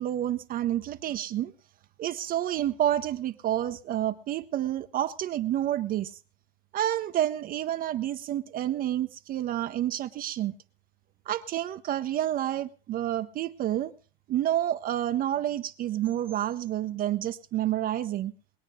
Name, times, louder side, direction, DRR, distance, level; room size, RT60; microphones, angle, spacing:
voice 1, 0.0-1.5 2.0-6.2 6.7-10.6 11.3-13.9 14.3-18.3, right 12 dB, 30° right, 0.6 m, -29 dB
20.0 x 8.9 x 5.3 m
hypercardioid pair, 100°, 30 cm